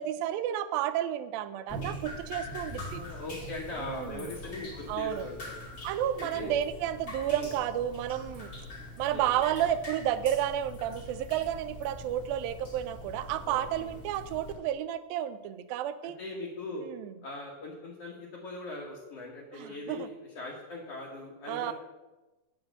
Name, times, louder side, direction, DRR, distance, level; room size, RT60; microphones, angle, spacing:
voice 1, 0.0-3.0 3.8-4.3 4.9-5.3 5.8-8.5 9.0-16.2 16.8-17.1 19.5-20.1 21.5-21.7, right 11 dB, 90° right, 12 dB, 2.4 m, -31 dB
Drip, 1.7-14.5, left 1 dB, 30° left, 2.1 m, -43 dB
voice 2, 2.7-5.7 6.2-6.6 7.4-7.5 9.1-9.3 13.5-13.9 16.0-16.9 17.2-21.7, left 2 dB, 55° left, -3 dB, 2.0 m, -40 dB
8.7 x 6.1 x 7.8 m, 1.1 s
omnidirectional pair, 4.1 m